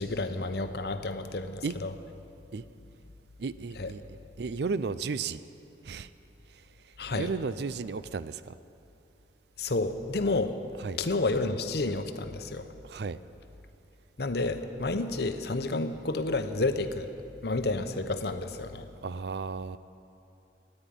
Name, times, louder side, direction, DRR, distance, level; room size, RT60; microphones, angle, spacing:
voice 1, 0.0-1.9 3.8-3.9 7.0-7.3 9.6-10.5 11.0-12.7 14.2-17.1 17.4-18.9, left 2 dB, 60° left, 9 dB, 0.8 m, -30 dB
voice 2, 3.4-4.0 4.4-5.4 5.8-6.1 6.5-6.6 7.1-8.5 10.8-11.0 12.8-13.2 19.0-19.8, right 4 dB, 65° right, 15 dB, 0.4 m, -34 dB
14.0 x 10.0 x 9.2 m, 2.8 s
head